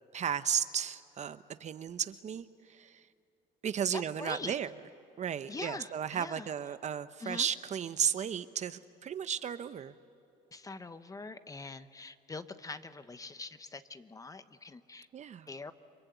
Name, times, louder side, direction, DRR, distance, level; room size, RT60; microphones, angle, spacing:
voice 1, 0.1-3.0 3.6-4.7 5.2-9.9 15.1-15.5, right 8 dB, 45° right, 0.8 m, -34 dB
voice 2, 3.9-4.6 5.5-6.5 7.2-7.5 10.5-15.1 15.5-15.7, left 3 dB, 20° left, 1.0 m, -43 dB
30.0 x 23.0 x 8.2 m
cardioid pair, 110°, 17 cm